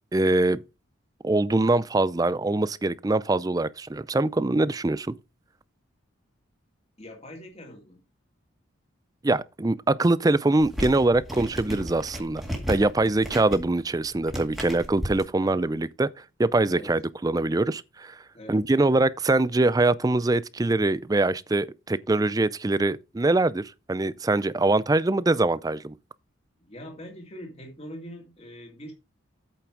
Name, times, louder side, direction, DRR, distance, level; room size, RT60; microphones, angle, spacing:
voice 1, 0.1-0.6 1.2-5.1 9.2-12.4 12.7-16.1 16.4-18.2 18.5-25.9, right 2 dB, 20° right, 0.4 m, -23 dB
voice 2, 7.0-8.1 15.4-15.8 16.7-17.0 18.3-18.9 26.7-28.9, equal, 30° left, 2.2 m, -43 dB
sound 1, 10.6-15.2, equal, ahead, 2.0 m, -35 dB
8.6 x 5.9 x 4.8 m
head